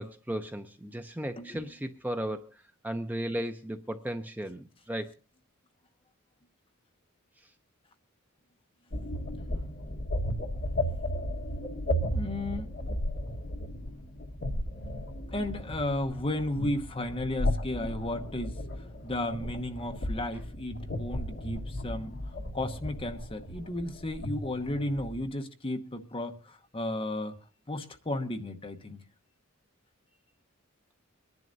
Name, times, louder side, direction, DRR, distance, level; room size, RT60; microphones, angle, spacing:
voice 1, 0.0-5.1, right 1 dB, 10° right, 0.5 m, -35 dB
sound 1, 8.9-25.3, left 1 dB, 55° left, 1.4 m, -35 dB
voice 2, 12.1-12.7 15.3-18.6 19.0-27.4 27.7-29.0, left 1 dB, 25° left, 1.0 m, -34 dB
24.0 x 11.0 x 2.6 m
head